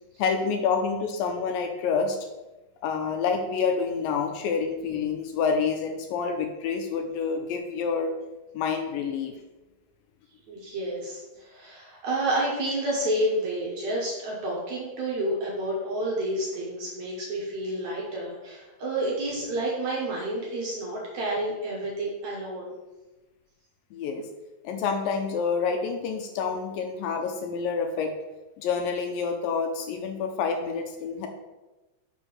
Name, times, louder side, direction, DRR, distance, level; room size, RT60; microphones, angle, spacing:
voice 1, 0.2-2.2 2.8-8.1 8.5-9.3 23.9-24.3 24.6-28.1 28.6-31.3, left 5 dB, 80° left, 5 dB, 2.1 m, -28 dB
voice 2, 10.5-22.7, right 1 dB, 60° right, -4 dB, 2.0 m, -30 dB
5.9 x 4.4 x 6.1 m, 1.1 s
omnidirectional pair, 4.5 m